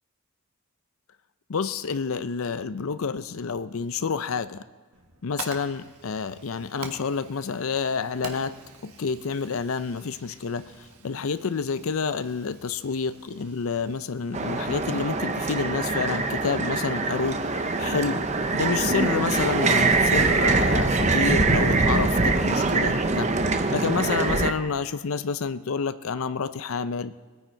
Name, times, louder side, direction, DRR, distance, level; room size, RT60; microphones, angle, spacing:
voice 1, 1.5-4.6 5.2-8.6 8.8-18.2 18.5-27.1, left 5 dB, 70° left, 13 dB, 0.5 m, -29 dB
Fire, 4.9-14.4, right 4 dB, 90° right, 1.4 m, -45 dB
sound 1, 14.3-24.5, right 3 dB, 30° right, 0.7 m, -23 dB
20.5 x 9.2 x 4.5 m, 1.4 s
head